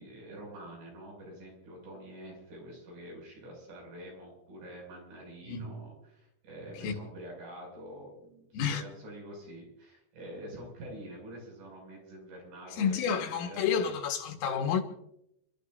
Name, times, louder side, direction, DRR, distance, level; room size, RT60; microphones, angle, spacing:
voice 1, 0.0-13.9, right 1 dB, 60° right, 8.7 m, -46 dB
voice 2, 8.5-8.8 12.7-14.8, left 7 dB, 80° left, 4.0 m, -30 dB
29.5 x 13.5 x 2.7 m
omnidirectional pair, 5.9 m